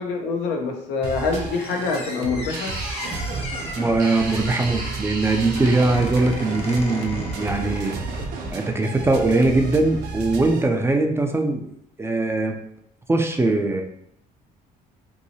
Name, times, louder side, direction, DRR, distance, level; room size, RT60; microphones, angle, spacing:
voice 1, 0.0-2.8, left 4 dB, 85° left, 2 dB, 0.6 m, -25 dB
sound 1, 1.0-10.6, right 4 dB, 85° right, 0.4 m, -34 dB
Squeak, 1.3-8.2, left 2 dB, 35° left, 0.7 m, -37 dB
sound 2, 2.5-8.7, right 3 dB, 55° right, 0.7 m, -34 dB
voice 2, 3.8-7.9 8.5-11.7 12.0-12.5 13.1-13.8, right 2 dB, 15° right, 4 dB, 0.3 m, -21 dB
2.9 x 2.7 x 2.7 m, 0.74 s
cardioid pair, 110°, 17 cm